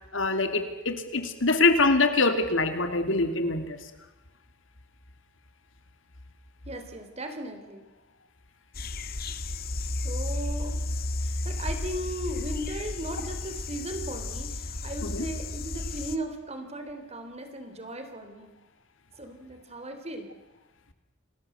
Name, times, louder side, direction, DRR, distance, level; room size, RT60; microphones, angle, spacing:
voice 1, 0.1-3.8 15.0-15.3, left 3 dB, 80° left, 8 dB, 2.7 m, -24 dB
voice 2, 6.7-7.8 9.9-10.8 11.2-18.5 19.1-20.3, right 1 dB, 35° right, 6 dB, 3.7 m, -37 dB
sound 1, 8.7-16.2, left 2 dB, 50° left, 1.5 m, -33 dB
28.5 x 20.0 x 8.0 m, 1.1 s
head